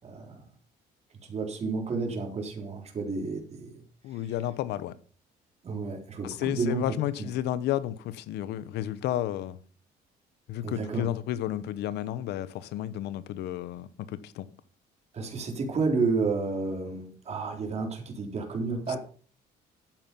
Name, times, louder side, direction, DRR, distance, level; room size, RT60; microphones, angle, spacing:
voice 1, 0.0-0.4 1.2-3.7 5.6-7.3 10.6-11.1 15.1-19.0, right 4 dB, 40° right, 3.8 m, -31 dB
voice 2, 4.0-4.9 6.2-9.6 10.5-14.5 18.9-19.0, left 12 dB, 80° left, 1.1 m, -32 dB
12.0 x 9.0 x 5.4 m
cardioid pair, 110°, 17 cm